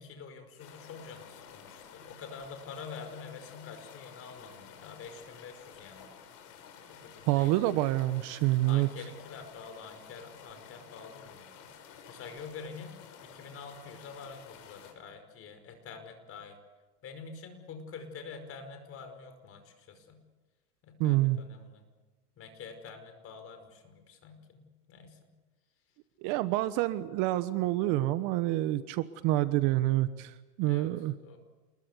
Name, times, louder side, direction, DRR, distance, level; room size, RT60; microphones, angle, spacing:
voice 1, 0.0-6.1 6.9-7.7 8.6-11.7 12.1-16.6 17.0-20.2 20.8-21.8 22.4-24.6 24.9-25.3 30.6-30.9 31.2-31.4, left 5 dB, 30° left, 7 dB, 5.3 m, -47 dB
sound 1, 0.6-14.9, left 7 dB, 50° left, 6.2 m, -52 dB
voice 2, 7.3-8.9 21.0-21.4 26.2-31.1, right 16 dB, 40° right, 13 dB, 1.2 m, -27 dB
28.5 x 21.5 x 8.2 m, 1.2 s
hypercardioid pair, 125°, 46 cm